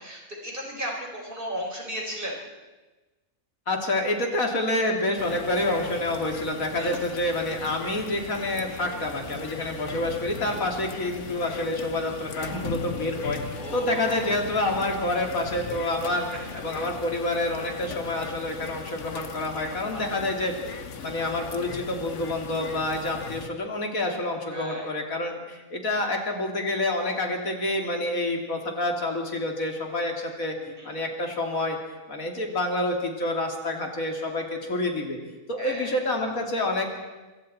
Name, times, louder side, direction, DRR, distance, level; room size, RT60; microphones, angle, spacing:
voice 1, 0.0-2.4 6.7-7.2 9.6-9.9 13.5-14.4 16.7-16.8 19.9-20.0 24.5-24.9 30.6-31.0 35.6-36.0, right 1 dB, 40° right, -1 dB, 4.3 m, -35 dB
voice 2, 3.7-16.3 16.5-30.5 30.8-31.8 32.1-35.2 35.5-36.9, left 1 dB, 75° left, 2 dB, 3.2 m, -28 dB
sound 1, 5.2-23.5, left 5 dB, 60° left, 1.5 m, -38 dB
25.5 x 23.5 x 4.3 m, 1.2 s
omnidirectional pair, 1.4 m